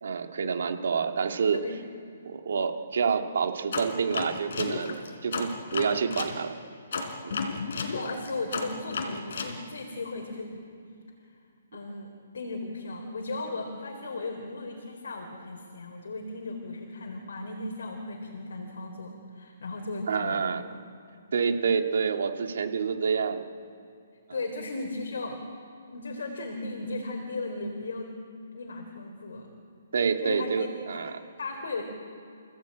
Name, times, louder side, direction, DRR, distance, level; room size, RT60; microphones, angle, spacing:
voice 1, 0.0-1.6 2.2-5.0 5.2-6.5 7.2-7.3 20.1-20.6 21.3-23.5 29.9-31.1, right 6 dB, 55° right, 5 dB, 2.0 m, -28 dB
sound 1, 3.7-6.4 6.9-9.6, left 4 dB, 50° left, 3.8 m, -33 dB
voice 2, 7.7-10.7 11.7-20.8 24.3-25.4 25.9-28.1 28.5-29.5 30.2-30.7 30.9-31.8, left 2 dB, 65° left, 2 dB, 3.9 m, -36 dB
28.5 x 16.5 x 9.0 m, 2.5 s
hypercardioid pair, 180°, 0 cm